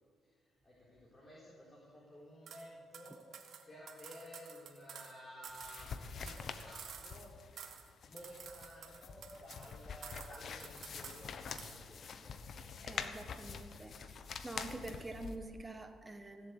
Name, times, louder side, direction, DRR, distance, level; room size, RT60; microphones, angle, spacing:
voice 1, 0.4-7.3 8.0-12.3, equal, 30° left, -5 dB, 3.9 m, -54 dB
sound 1, 2.5-2.7 2.9-5.1 5.4-7.3 7.6-7.9 8.2-9.7 10.0-11.3 11.6-11.8, right 8 dB, 65° right, 1.4 m, -52 dB
sound 2, 5.5-15.4, left 6 dB, 55° left, 1.0 m, -46 dB
voice 2, 12.8-14.1 14.4-16.5, right 2 dB, 15° right, 7 dB, 1.3 m, -46 dB
16.5 x 7.8 x 8.2 m, 2.1 s
cardioid pair, 90°, 0 cm